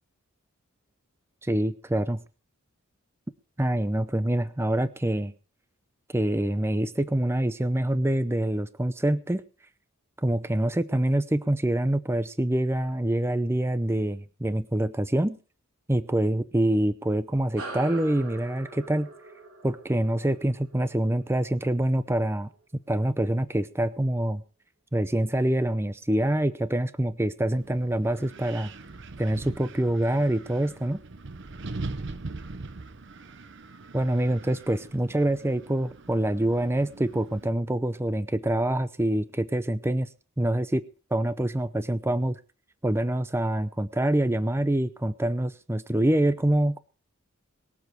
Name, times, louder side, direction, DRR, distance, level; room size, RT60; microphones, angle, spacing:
voice 1, 1.4-2.2 3.6-5.3 6.1-9.4 10.2-15.4 15.9-19.1 19.6-22.5 22.9-24.4 24.9-28.7 29.2-31.0 33.9-40.1 40.4-40.8 41.1-42.3 42.8-46.8, right 1 dB, 10° right, 13 dB, 0.6 m, -25 dB
sound 1, 17.6-22.4, right 3 dB, 85° right, 3.1 m, -43 dB
Wind, 27.5-37.5, right 3 dB, 60° right, 0.9 m, -41 dB
22.5 x 7.5 x 4.7 m, 0.36 s
head